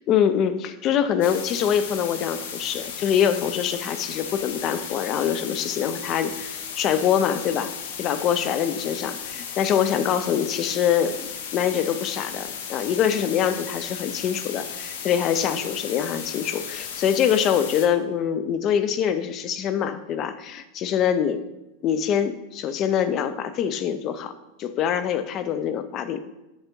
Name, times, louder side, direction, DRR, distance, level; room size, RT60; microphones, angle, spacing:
voice 1, 0.1-7.7 8.0-21.4 21.8-24.3 24.6-26.2, left 8 dB, 25° left, 11 dB, 0.4 m, -24 dB
sound 1, 1.2-17.9, left 7 dB, 75° left, 0.8 m, -35 dB
7.1 x 3.4 x 5.2 m, 0.98 s
supercardioid pair, 180°, 0 cm